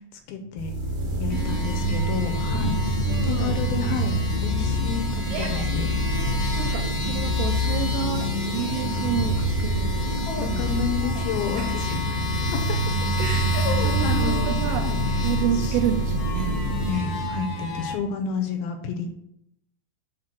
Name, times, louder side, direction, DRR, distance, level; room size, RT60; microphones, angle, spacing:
voice 1, 0.3-0.7 1.2-2.8 3.2-4.1 4.4-5.9 10.3-12.2 12.5-12.6 13.5-15.0 15.6-15.8 16.8-19.1, left 6 dB, 75° left, 2.4 m, -30 dB
sound 1, 0.6-18.1, equal, 35° right, 3.1 m, -26 dB
sound 2, 1.3-17.9, left 3 dB, 55° left, 1.3 m, -35 dB
voice 2, 1.3-2.1 2.6-3.6 5.7-9.9 10.2-10.8 11.6-12.0 13.2-14.9 15.2-16.6, right 9 dB, 85° right, 2.6 m, -31 dB
Yell, 3.7-4.2 5.1-5.7 6.4-6.9 8.1-9.0 10.8-11.5, right 4 dB, 55° right, 3.8 m, -40 dB
7.6 x 4.0 x 6.3 m
omnidirectional pair, 4.8 m